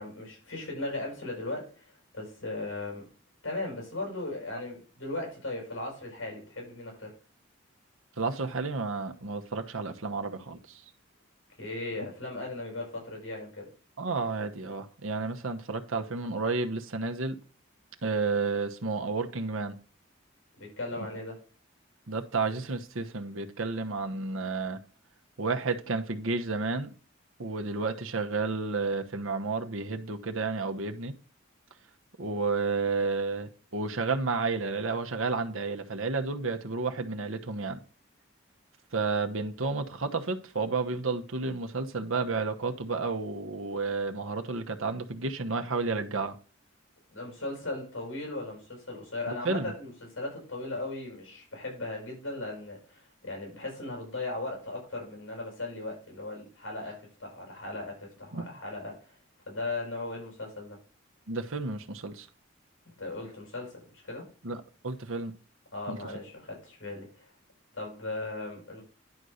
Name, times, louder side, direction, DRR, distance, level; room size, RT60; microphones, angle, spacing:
voice 1, 0.0-3.1 3.4-7.1 11.6-13.7 20.6-21.4 47.1-59.2 59.5-60.8 62.9-64.3 65.7-67.3 67.7-68.8, left 2 dB, 70° left, 6.0 m, -37 dB
voice 2, 8.2-10.8 14.0-17.4 18.0-19.7 21.0-21.1 22.1-24.8 25.4-26.9 27.4-31.1 32.2-37.8 38.9-46.4 49.3-49.7 58.3-58.4 61.3-62.3 64.4-64.6 64.8-65.3 65.9-66.0, right 4 dB, 80° right, 1.1 m, -31 dB
10.5 x 4.1 x 6.4 m
head